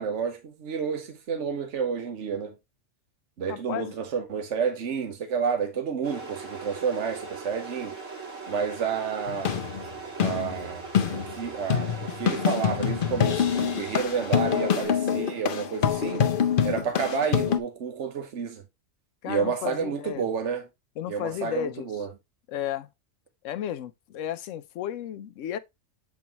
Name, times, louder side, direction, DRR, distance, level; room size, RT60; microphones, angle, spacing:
voice 1, 0.0-2.5 3.4-8.0 8.5-9.6 10.2-10.9 11.1-16.3 16.6-18.6 19.3-20.6 21.1-22.1, right 6 dB, 70° right, 1.3 m, -30 dB
voice 2, 3.5-3.9 19.2-20.3 21.0-21.9 22.5-22.9 23.4-25.6, left 11 dB, 85° left, 1.0 m, -33 dB
sound 1, 6.0-14.9, right 4 dB, 85° right, 2.7 m, -39 dB
sound 2, 9.3-17.6, left 8 dB, 55° left, 0.7 m, -26 dB
7.4 x 4.6 x 2.9 m
omnidirectional pair, 1.3 m